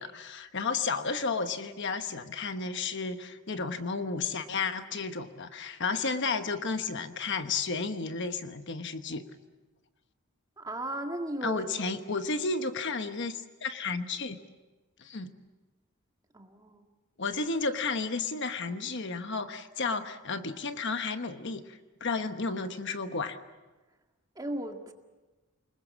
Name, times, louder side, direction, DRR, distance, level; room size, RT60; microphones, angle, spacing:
voice 1, 0.0-9.2 11.4-14.4 15.0-15.3 17.2-23.4, left 4 dB, 55° left, 8 dB, 1.1 m, -32 dB
voice 2, 10.6-11.9 16.3-16.8 24.4-24.9, right 1 dB, 15° right, 3 dB, 1.9 m, -36 dB
28.5 x 20.5 x 7.3 m, 1.2 s
head